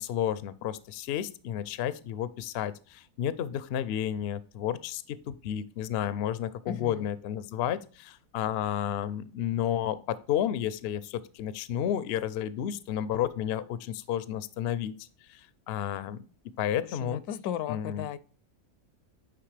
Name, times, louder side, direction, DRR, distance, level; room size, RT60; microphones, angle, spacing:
voice 1, 0.0-16.2 16.6-17.2 17.7-18.1, left 10 dB, 70° left, 0.6 m, -32 dB
voice 2, 6.7-7.1 17.0-18.2, left 10 dB, 90° left, 1.1 m, -35 dB
9.3 x 3.6 x 3.3 m
omnidirectional pair, 1.6 m